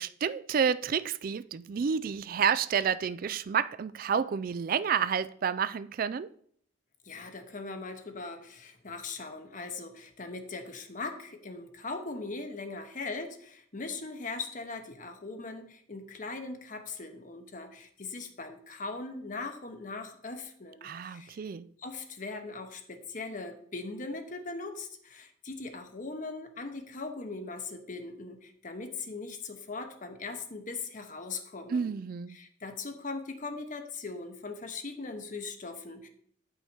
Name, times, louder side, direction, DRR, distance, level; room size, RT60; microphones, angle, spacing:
voice 1, 0.0-6.3 20.8-21.7 31.7-32.4, right 7 dB, 45° right, 0.3 m, -30 dB
voice 2, 7.0-21.4 21.8-31.9 32.3-36.1, left 3 dB, 40° left, 0.9 m, -40 dB
9.3 x 5.7 x 4.4 m
head